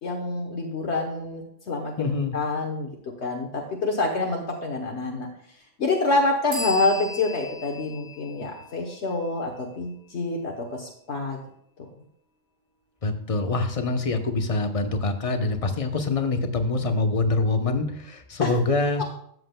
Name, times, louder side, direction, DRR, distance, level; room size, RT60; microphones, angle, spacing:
voice 1, 0.0-1.9 2.3-2.9 3.2-5.3 5.8-11.4 18.4-18.5 19.0-19.1, left 3 dB, 65° left, 1 dB, 1.3 m, -27 dB
voice 2, 2.0-2.4 13.0-19.0, left 3 dB, 35° left, 6 dB, 0.8 m, -25 dB
sound 1, 6.5-10.1, left 2 dB, 70° right, 2.2 m, -38 dB
13.0 x 7.7 x 2.2 m, 0.68 s
omnidirectional pair, 1.2 m